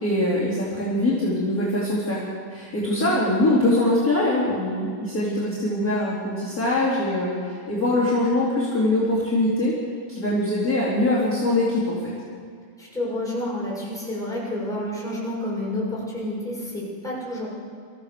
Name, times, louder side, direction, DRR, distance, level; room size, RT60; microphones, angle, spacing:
voice 1, 0.0-2.2 2.5-9.7 10.1-12.1, left 1 dB, 25° left, -9 dB, 4.3 m, -23 dB
voice 2, 2.8-3.2 12.8-17.5, left 1 dB, ahead, -6 dB, 6.8 m, -29 dB
27.0 x 15.5 x 7.0 m, 2.1 s
omnidirectional pair, 3.6 m